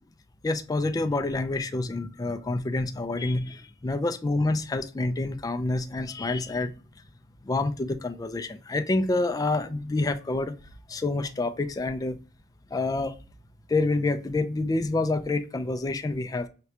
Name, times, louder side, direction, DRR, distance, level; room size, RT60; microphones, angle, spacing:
voice 1, 0.4-6.7 7.4-10.5 10.9-12.2 12.7-13.2 13.7-16.5, left 2 dB, 20° left, 0.3 m, -27 dB
5.9 x 2.2 x 2.7 m
head